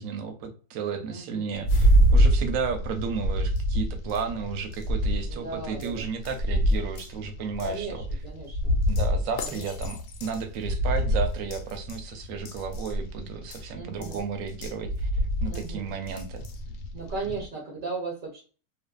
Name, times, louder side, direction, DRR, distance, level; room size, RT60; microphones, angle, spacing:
voice 1, 0.0-8.0 8.9-15.1 15.4-16.5, right 6 dB, 70° right, 7 dB, 0.9 m, -33 dB
voice 2, 1.1-1.8 5.3-6.1 6.7-6.8 7.6-8.8 9.4-9.9 13.7-14.2 15.4-15.9 16.9-18.4, right 3 dB, 50° right, -3 dB, 0.6 m, -37 dB
sound 1, 1.6-17.5, equal, 75° left, 1.0 m, -26 dB
2.5 x 2.4 x 2.2 m, 0.39 s
omnidirectional pair, 1.6 m